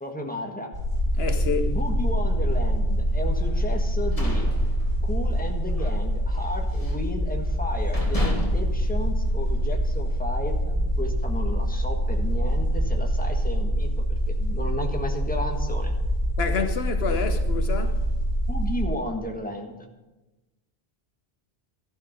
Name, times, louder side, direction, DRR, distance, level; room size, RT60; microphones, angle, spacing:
voice 1, 0.0-0.7 1.6-4.4 5.0-13.9 14.4-15.9 18.5-19.9, left 1 dB, 10° left, 1.5 m, -33 dB
sound 1, 0.7-18.8, equal, 50° right, 3.7 m, -25 dB
voice 2, 1.2-1.8 16.4-18.1, left 6 dB, 75° left, 1.1 m, -28 dB
sound 2, 3.8-5.4 5.7-6.0 6.3-7.1 7.6-7.7 7.9-9.8, left 1 dB, 35° left, 2.2 m, -32 dB
13.0 x 11.5 x 5.2 m
omnidirectional pair, 1.1 m